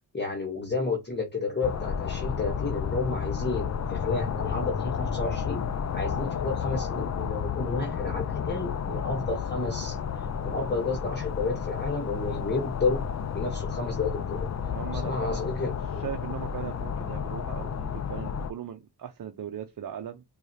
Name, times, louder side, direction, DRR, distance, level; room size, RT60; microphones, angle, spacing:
voice 1, 0.1-5.6 5.9-10.0 10.4-13.0 13.3-14.5 14.9-16.1, left 3 dB, 25° left, 1.1 m, -31 dB
sound 1, 1.6-18.5, left 7 dB, 45° left, 0.5 m, -32 dB
voice 2, 14.7-15.6 16.0-20.2, right 9 dB, 55° right, 0.7 m, -39 dB
4.7 x 2.4 x 2.7 m
cardioid pair, 80°, 40 cm